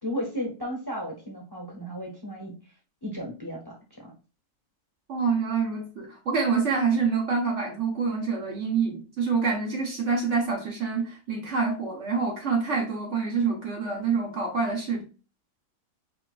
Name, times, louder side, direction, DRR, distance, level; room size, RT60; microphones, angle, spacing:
voice 1, 0.0-2.6 3.0-4.1, equal, 20° left, 0.8 m, -34 dB
voice 2, 5.1-15.0, right 5 dB, 55° right, 1.1 m, -26 dB
4.6 x 2.8 x 2.4 m
omnidirectional pair, 1.6 m